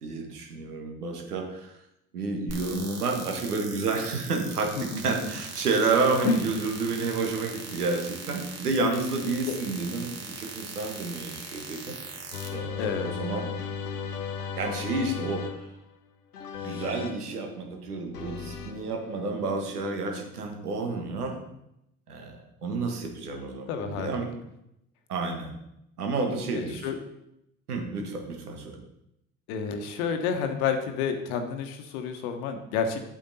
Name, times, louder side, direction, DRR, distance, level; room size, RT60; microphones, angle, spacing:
voice 1, 0.0-1.7 2.1-12.0 12.5-13.5 14.6-15.7 16.6-21.4 22.1-24.3 25.1-25.5 26.0-26.9 27.7-28.8, right 3 dB, 85° right, 3 dB, 1.6 m, -30 dB
sound 1, 2.5-12.5, right 4 dB, 35° right, 2.0 m, -40 dB
voice 2, 4.8-5.1 6.2-6.4 9.5-9.6 12.8-13.1 23.7-24.3 26.5-27.0 29.5-33.0, left 6 dB, 70° left, 6 dB, 1.2 m, -29 dB
sound 2, 12.3-15.9 16.3-17.3 18.1-20.5, left 6 dB, 90° left, 0.8 m, -36 dB
8.6 x 8.3 x 4.1 m, 0.83 s
figure-of-eight pair, 55°, 44 cm